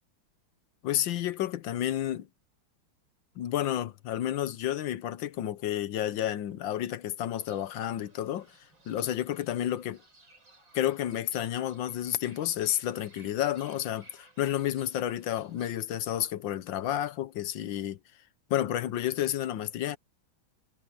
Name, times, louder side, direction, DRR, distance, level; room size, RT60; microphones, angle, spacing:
voice 1, 0.8-2.3 3.4-8.5 8.9-10.0 10.7-18.0 18.5-20.0, left 12 dB, 70° left, 1.5 m, -31 dB
Fowl / Bird, 7.3-15.7, right 2 dB, 65° right, 6.4 m, -59 dB
omnidirectional pair, 2.2 m